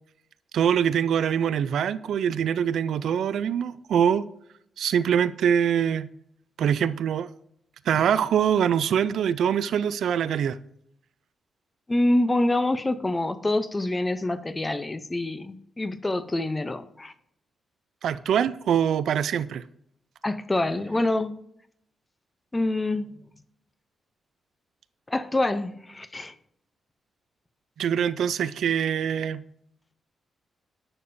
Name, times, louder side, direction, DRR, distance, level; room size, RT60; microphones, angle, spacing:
voice 1, 0.5-4.2 4.8-6.1 6.6-7.3 7.9-10.6 18.0-19.6 27.8-29.4, right 8 dB, 80° right, 0.4 m, -24 dB
voice 2, 11.9-17.1 20.2-21.4 22.5-23.1 25.1-26.3, left 2 dB, 15° left, 0.6 m, -26 dB
11.0 x 6.7 x 2.6 m
wide cardioid pair, 130°, 0 cm